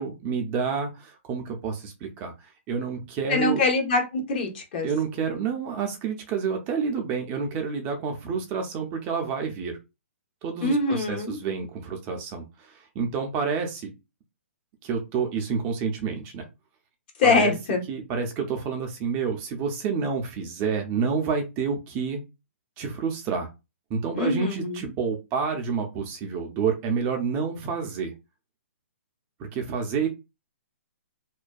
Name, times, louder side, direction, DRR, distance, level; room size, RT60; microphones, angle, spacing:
voice 1, 0.0-3.6 4.8-9.8 10.4-13.9 14.8-16.5 17.2-17.5 17.9-22.2 22.8-23.5 23.9-28.1 29.5-30.1, right 6 dB, 25° right, 4 dB, 0.4 m, -29 dB
voice 2, 3.3-4.9 10.6-11.4 17.2-17.8 24.2-24.9, left 3 dB, 45° left, 3 dB, 0.9 m, -24 dB
2.5 x 2.2 x 2.2 m, 0.27 s
hypercardioid pair, 140°, 7 cm